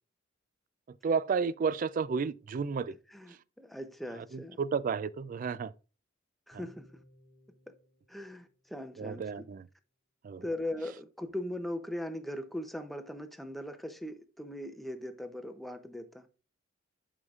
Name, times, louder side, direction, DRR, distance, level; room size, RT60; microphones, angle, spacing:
voice 1, 1.0-2.9 3.3-3.4 4.3-5.7 6.5-6.6 9.0-9.7 10.2-10.4, right 5 dB, 40° right, 0.3 m, -32 dB
voice 2, 3.1-4.6 6.5-7.0 8.1-9.5 10.4-16.3, left 1 dB, ahead, 0.6 m, -39 dB
sound 1, 6.5-9.1, equal, 90° right, 3.6 m, -61 dB
11.0 x 4.9 x 2.4 m
head